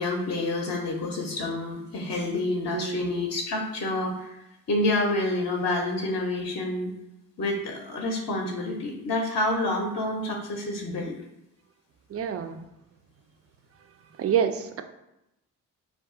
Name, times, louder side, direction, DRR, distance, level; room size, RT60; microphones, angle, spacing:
voice 1, 0.0-6.9 7.4-11.1, left 2 dB, 40° left, 0 dB, 0.6 m, -28 dB
voice 2, 2.7-3.2 12.1-12.6 14.2-14.8, right 8 dB, 35° right, 8 dB, 0.4 m, -28 dB
2.4 x 2.4 x 3.6 m, 0.89 s
hypercardioid pair, 45°, 44 cm